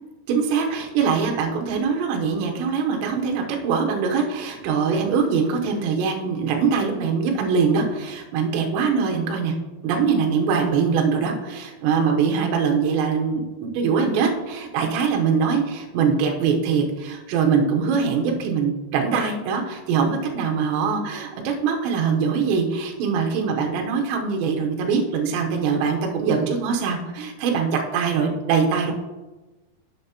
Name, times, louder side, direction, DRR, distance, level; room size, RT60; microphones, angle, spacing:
voice 1, 0.3-9.5 9.8-28.9, right 5 dB, 75° right, 1 dB, 3.1 m, -23 dB
10.5 x 7.5 x 2.9 m, 1.1 s
omnidirectional pair, 5.5 m